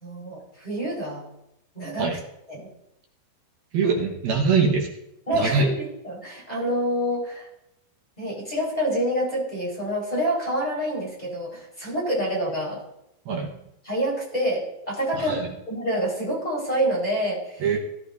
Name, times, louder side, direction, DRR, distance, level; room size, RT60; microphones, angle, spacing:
voice 1, 0.0-1.3 1.7-2.2 2.5-2.7 3.8-4.0 5.3-7.5 8.2-12.8 13.8-17.7, equal, 10° left, -5 dB, 4.2 m, -27 dB
voice 2, 3.7-4.9 5.3-5.7 13.3-13.5 15.1-15.5 17.6-17.8, right 5 dB, 65° right, -1 dB, 2.7 m, -23 dB
20.0 x 12.5 x 2.7 m, 0.83 s
omnidirectional pair, 5.4 m